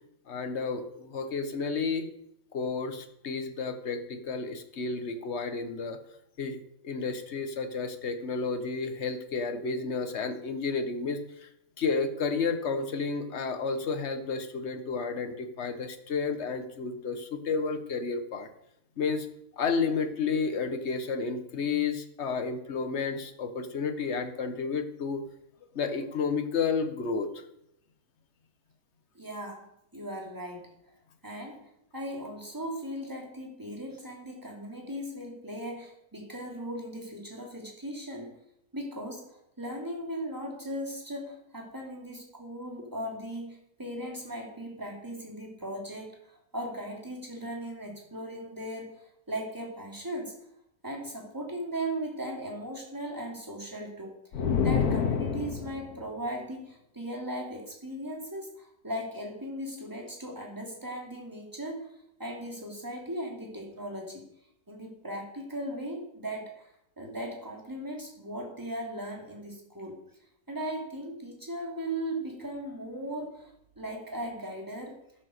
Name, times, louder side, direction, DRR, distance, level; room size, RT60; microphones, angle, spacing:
voice 1, 0.3-2.1 2.5-6.0 6.4-6.6 6.8-11.2 11.8-18.5 19.0-19.3 19.6-25.2 25.7-27.3, left 4 dB, 50° left, 8 dB, 1.5 m, -31 dB
voice 2, 29.1-29.7 29.9-30.7 31.2-38.4 38.7-50.4 50.8-61.9 62.2-64.3 64.7-66.7 67.0-70.0 70.5-75.0, right 1 dB, 10° right, 0 dB, 3.1 m, -38 dB
sound 1, 54.3-56.0, left 6 dB, 80° left, 1.7 m, -27 dB
12.0 x 8.0 x 6.7 m, 0.77 s
omnidirectional pair, 1.6 m